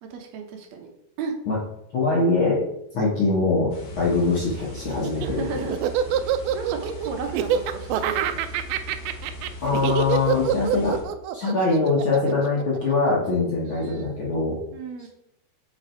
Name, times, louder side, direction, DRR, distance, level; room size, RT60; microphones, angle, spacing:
voice 1, 0.0-0.9 1.2-1.4 5.1-5.7 6.5-8.4 14.7-15.1, right 5 dB, 70° right, 3 dB, 1.8 m, -33 dB
voice 2, 1.9-2.6 2.9-5.4 9.6-11.0 11.3-14.6, left 3 dB, 60° left, -5 dB, 1.3 m, -23 dB
sound 1, 3.7-11.0, left 1 dB, 85° left, 0.9 m, -39 dB
Laughter, 4.9-13.3, right 9 dB, 85° right, 2.3 m, -26 dB
6.5 x 5.0 x 4.5 m, 0.79 s
omnidirectional pair, 4.2 m